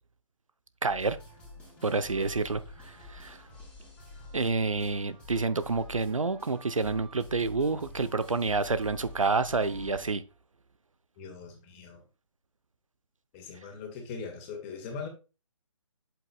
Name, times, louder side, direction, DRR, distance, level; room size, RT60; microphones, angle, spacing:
voice 1, 0.8-1.2 1.8-3.4 4.3-10.2, right 4 dB, 80° right, 0.8 m, -28 dB
sound 1, 0.9-10.1, left 2 dB, 5° left, 2.9 m, -48 dB
voice 2, 11.2-12.0 13.3-15.1, left 5 dB, 25° left, 2.0 m, -40 dB
8.0 x 7.7 x 2.3 m
figure-of-eight pair, 145°, 17 cm